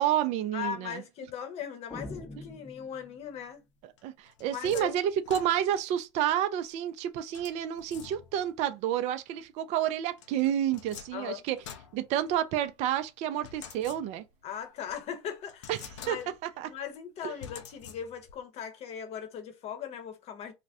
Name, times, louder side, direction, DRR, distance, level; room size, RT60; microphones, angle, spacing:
voice 1, 0.0-1.0 4.0-11.6 11.9-14.2 15.7-15.8 16.1-16.2 16.6-16.7 17.2-17.3, right 11 dB, 45° right, 0.4 m, -29 dB
voice 2, 0.5-3.6 4.5-5.0 11.1-11.5 14.4-15.7 16.0-16.3 16.7-20.5, left 8 dB, 45° left, 0.8 m, -39 dB
sound 1, 1.9-3.5, left 2 dB, 10° left, 0.6 m, -44 dB
sound 2, 4.0-5.9 7.3-8.5 10.2-12.7 13.4-14.4 14.9-15.0 15.5-16.6 17.4-18.4, left 8 dB, 80° left, 0.5 m, -48 dB
2.4 x 2.1 x 3.5 m
hypercardioid pair, 95°, 15 cm